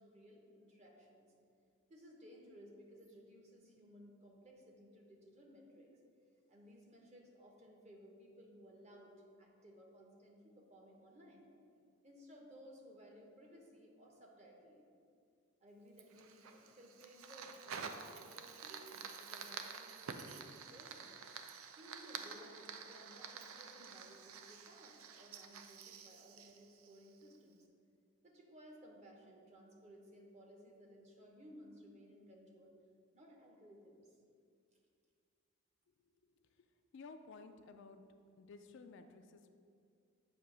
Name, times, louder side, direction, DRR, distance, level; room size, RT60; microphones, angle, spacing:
voice 1, 0.0-1.3 1.9-5.9 6.5-9.1 9.4-11.5 12.0-14.9 15.6-21.2 21.8-27.7 28.2-32.7 33.1-34.2 34.7-34.8, equal, 30° right, 0 dB, 0.9 m, -59 dB
Fire, 16.0-27.4, right 6 dB, 65° right, 0.4 m, -50 dB
voice 2, 36.9-38.0 38.4-39.5, left 4 dB, 55° left, 7 dB, 0.3 m, -54 dB
8.1 x 2.8 x 6.0 m, 2.3 s
head